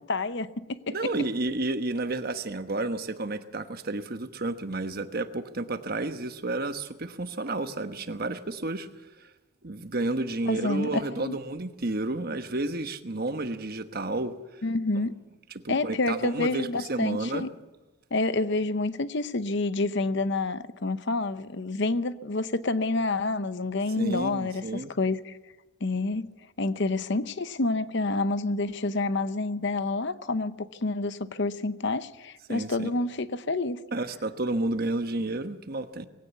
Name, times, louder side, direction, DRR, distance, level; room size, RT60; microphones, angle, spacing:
voice 1, 0.1-1.0 10.5-11.4 14.6-15.2 15.7-17.5 18.1-25.4 25.8-26.3 26.6-33.8, left 2 dB, 55° left, 0.8 m, -28 dB
voice 2, 0.9-8.9 9.2-9.3 9.6-14.6 15.5-17.5 24.0-24.9 32.5-32.9 33.9-36.1, right 2 dB, 45° right, 1.2 m, -31 dB
21.0 x 17.0 x 8.3 m
head